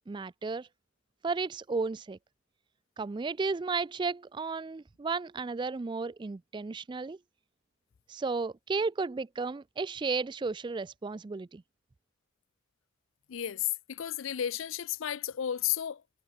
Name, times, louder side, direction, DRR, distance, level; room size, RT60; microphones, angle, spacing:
voice 1, 0.1-0.7 1.2-2.2 3.0-7.2 8.1-11.6, right 4 dB, 20° right, 0.3 m, -33 dB
voice 2, 13.3-16.0, left 11 dB, 75° left, 0.5 m, -33 dB
head